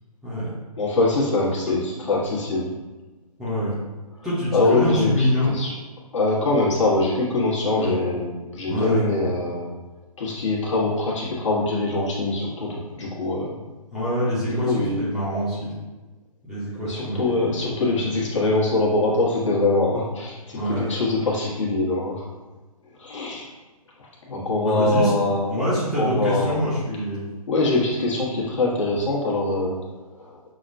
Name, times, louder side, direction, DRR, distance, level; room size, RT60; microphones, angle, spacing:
voice 1, 0.8-2.7 4.5-5.7 6.1-9.8 10.2-13.6 14.5-15.0 16.8-22.3 23.0-23.5 24.3-25.7 26.0-26.7 27.5-29.8 30.2-30.4, left 2 dB, 50° left, -5 dB, 1.3 m, -23 dB
voice 2, 3.4-3.8 4.2-5.5 7.7-7.9 8.6-9.1 13.9-15.8 16.5-17.6 17.9-18.2 20.5-20.9 24.6-25.2 25.5-27.3, equal, ahead, -13 dB, 0.7 m, -25 dB
6.1 x 2.2 x 2.6 m, 1.2 s
figure-of-eight pair, 145°, 20 cm